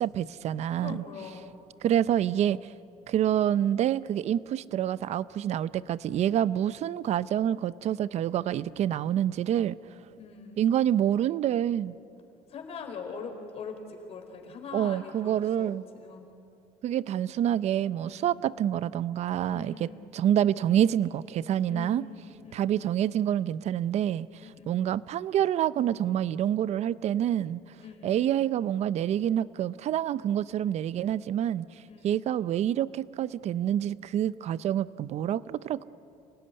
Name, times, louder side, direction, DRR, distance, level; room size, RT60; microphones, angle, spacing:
voice 1, 0.0-1.0 1.8-2.6 3.1-9.8 10.6-11.9 14.7-15.8 16.8-19.9 20.1-22.0 22.5-24.3 24.7-27.6 28.0-31.7 32.0-35.8, right 10 dB, 45° right, 17 dB, 0.6 m, -27 dB
voice 2, 0.8-1.6 10.2-10.6 12.5-16.3 18.0-18.4 19.4-20.1 21.7-22.7 24.4-24.7 27.8-28.3 31.9-32.2, left 5 dB, 45° left, 4 dB, 4.2 m, -42 dB
29.0 x 18.5 x 9.8 m, 2.6 s
cardioid pair, 140°, 15 cm